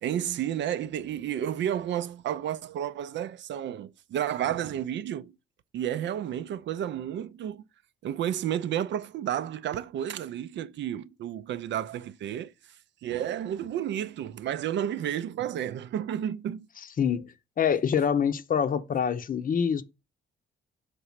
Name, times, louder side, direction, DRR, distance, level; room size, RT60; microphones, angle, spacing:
voice 1, 0.0-5.3 5.7-7.6 8.0-12.5 13.0-16.7, right 10 dB, 65° right, 0.5 m, -31 dB
voice 2, 17.0-19.8, left 7 dB, 45° left, 0.7 m, -26 dB
6.0 x 3.3 x 5.7 m
cardioid pair, 90°, 20 cm